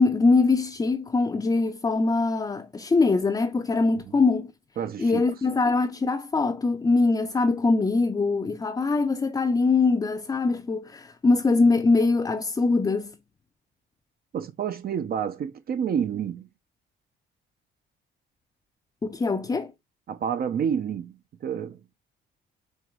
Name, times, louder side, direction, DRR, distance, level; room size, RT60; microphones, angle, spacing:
voice 1, 0.0-4.5 5.0-13.1 19.0-19.7, left 3 dB, 20° left, 0.4 m, -22 dB
voice 2, 4.8-5.3 14.3-16.4 20.1-21.1 21.4-21.8, right 8 dB, 50° right, 0.5 m, -29 dB
4.5 x 2.9 x 2.2 m
cardioid pair, 90°, 20 cm